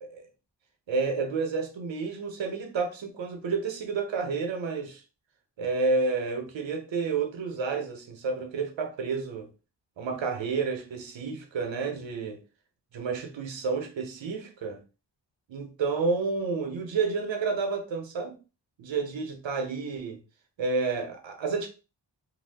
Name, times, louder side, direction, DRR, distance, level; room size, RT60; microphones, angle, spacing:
voice 1, 0.9-5.0 5.6-9.5 10.0-12.4 12.9-14.8 15.5-18.4 18.8-20.2 20.6-21.7, right 4 dB, 80° right, 0.8 m, -30 dB
2.6 x 2.2 x 3.3 m
cardioid pair, 55°, 44 cm